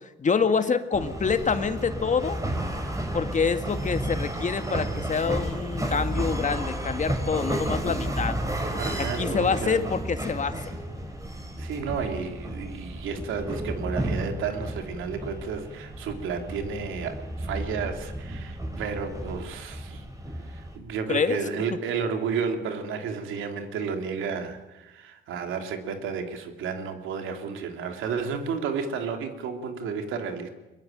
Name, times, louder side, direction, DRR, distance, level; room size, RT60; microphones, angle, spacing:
voice 1, 0.2-2.4 3.1-8.4 9.0-10.6 21.1-21.4, left 5 dB, 40° left, 9 dB, 1.9 m, -26 dB
sound 1, 0.9-20.8, right 1 dB, 15° right, 4.9 m, -32 dB
voice 2, 8.8-9.8 11.6-20.0 20.4-30.5, right 6 dB, 85° right, 5 dB, 3.1 m, -32 dB
22.0 x 22.0 x 9.0 m, 1.0 s
cardioid pair, 90°, 20 cm